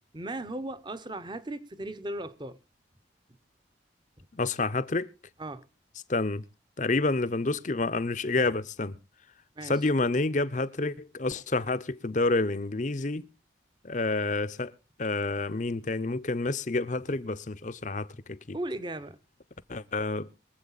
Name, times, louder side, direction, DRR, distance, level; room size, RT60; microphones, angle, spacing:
voice 1, 0.1-2.6 4.2-4.3 5.4-5.7 9.6-9.7 18.5-19.2, right 1 dB, 25° right, 0.9 m, -36 dB
voice 2, 4.3-5.1 6.1-6.4 6.8-9.0 9.6-13.3 13.8-14.7 15.0-18.6 19.7-20.3, left 3 dB, 40° left, 0.7 m, -29 dB
24.0 x 8.0 x 4.0 m
head